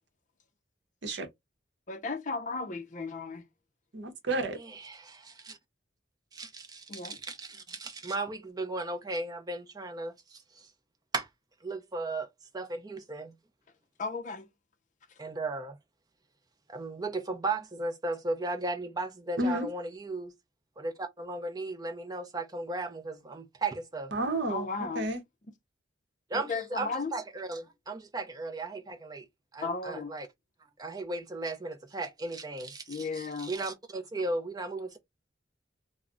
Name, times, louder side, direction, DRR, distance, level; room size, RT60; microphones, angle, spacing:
voice 1, 1.9-3.5 6.9-7.2 14.0-14.5 24.5-25.1 26.3-27.1 29.6-30.1 32.9-33.5, left 4 dB, 40° left, 0.5 m, -35 dB
voice 2, 3.9-4.6 19.4-19.7 24.1-24.7 24.9-25.2, right 1 dB, 65° right, 0.7 m, -30 dB
voice 3, 4.6-5.6 6.3-10.7 11.1-11.3 11.6-12.3 12.5-13.3 15.2-15.8 16.7-20.3 20.8-24.1 26.3-29.3 29.5-30.3 30.8-33.0 33.4-35.0, right 2 dB, 20° right, 0.5 m, -36 dB
2.3 x 2.0 x 3.6 m
head